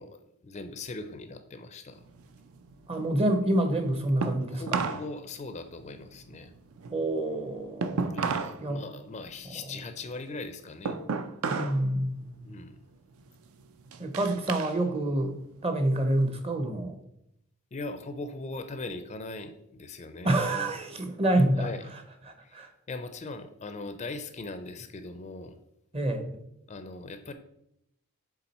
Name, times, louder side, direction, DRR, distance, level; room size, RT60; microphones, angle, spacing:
voice 1, 0.0-2.0 4.5-6.5 8.1-11.0 12.4-12.8 17.7-20.7 21.6-21.9 22.4-25.6 26.7-27.3, left 3 dB, 30° left, 9 dB, 0.4 m, -40 dB
sound 1, 2.0-5.1 5.4-8.6 9.0-11.8 12.2-12.6 13.1-14.8 15.1-16.3, right 5 dB, 65° right, 0.5 m, -34 dB
voice 2, 2.9-4.6 6.9-8.3 8.6-8.8 11.5-12.4 14.0-15.3 15.6-17.0 20.2-21.7 22.5-22.7 25.9-26.4, right 1 dB, 25° right, 6 dB, 0.7 m, -27 dB
7.1 x 3.7 x 4.2 m, 0.78 s
head